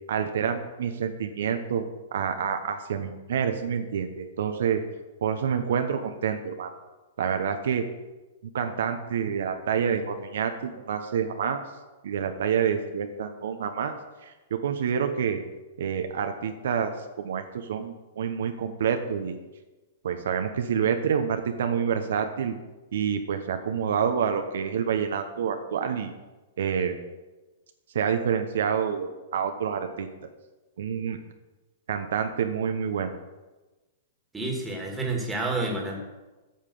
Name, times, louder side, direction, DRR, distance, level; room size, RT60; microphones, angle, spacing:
voice 1, 0.1-1.9 2.1-4.8 5.2-6.7 7.2-7.8 8.4-11.6 12.0-14.0 14.2-15.4 15.8-16.9 17.2-19.4 20.0-22.6 22.9-26.1 26.6-27.0 27.9-30.1 30.8-31.2 31.9-33.1, right 7 dB, 75° right, 7 dB, 0.9 m, -28 dB
voice 2, 34.3-36.0, right 2 dB, 10° right, 0 dB, 2.0 m, -29 dB
8.6 x 5.7 x 7.0 m, 1.1 s
hypercardioid pair, 135°, 0 cm